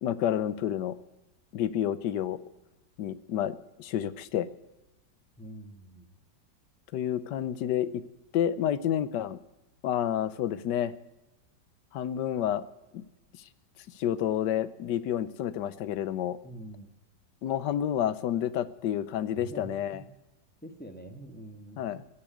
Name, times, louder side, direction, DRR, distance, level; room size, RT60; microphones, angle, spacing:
voice 1, 0.0-1.0 1.5-2.4 3.0-4.5 6.9-8.0 8.3-9.4 9.8-10.9 11.9-12.6 12.9-13.0 14.0-16.4 17.4-20.0 21.8-22.0, left 10 dB, 75° left, 16 dB, 1.4 m, -29 dB
voice 2, 5.4-6.1 16.4-16.9 19.3-20.0 20.6-21.9, right 1 dB, 5° left, 6 dB, 1.4 m, -45 dB
15.5 x 8.7 x 9.2 m, 1.0 s
omnidirectional pair, 1.9 m